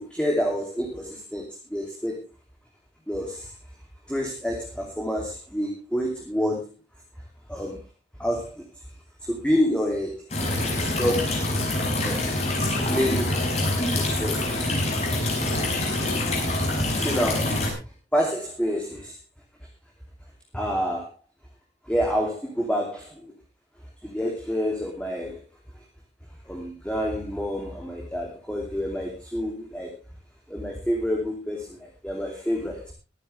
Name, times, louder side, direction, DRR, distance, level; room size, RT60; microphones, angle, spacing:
voice 1, 0.0-2.2 3.1-3.5 4.1-6.7 7.5-7.8 8.2-8.6 9.2-10.2 11.0-11.4 12.0-12.2 12.6-13.5 13.9-14.4 17.0-17.7 18.1-19.2 20.5-21.1 21.8-23.3 24.0-25.4 26.5-30.0 30.5-32.9, equal, 5° left, -1 dB, 2.9 m, -28 dB
sound 1, 10.3-17.7, left 1 dB, 40° left, 6.2 m, -25 dB
23.5 x 10.0 x 3.4 m, 0.30 s
head